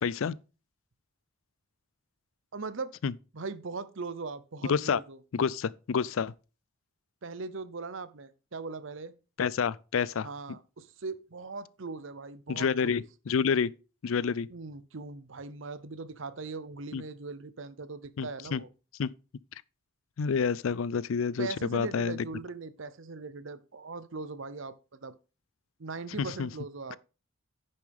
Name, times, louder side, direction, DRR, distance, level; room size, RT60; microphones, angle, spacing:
voice 1, 0.0-0.3 3.0-3.1 4.7-5.0 5.3-6.3 9.4-10.3 12.5-13.7 14.0-14.5 16.9-17.0 18.2-18.6 19.0-19.1 20.2-22.2 26.4-26.5, left 6 dB, 70° left, 0.4 m, -28 dB
voice 2, 2.5-2.9 3.3-5.2 7.2-9.1 10.2-13.0 14.5-18.7 21.4-25.1 25.8-27.0, right 4 dB, 65° right, 0.7 m, -40 dB
10.0 x 6.9 x 3.5 m
head